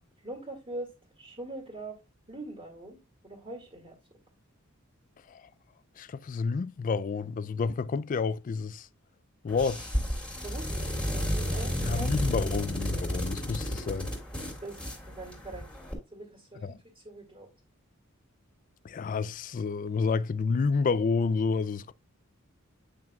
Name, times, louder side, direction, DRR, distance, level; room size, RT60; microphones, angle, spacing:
voice 1, 0.2-0.9 1.2-2.0 2.3-4.0 10.4-12.2 14.6-15.7 16.1-17.5, right 2 dB, 25° right, 2.2 m, -42 dB
voice 2, 6.0-8.9 9.4-9.9 11.8-14.1 16.6-16.7 18.8-21.9, left 4 dB, 40° left, 0.3 m, -29 dB
sound 1, 9.5-15.9, equal, 5° left, 2.2 m, -32 dB
8.9 x 5.9 x 2.3 m
head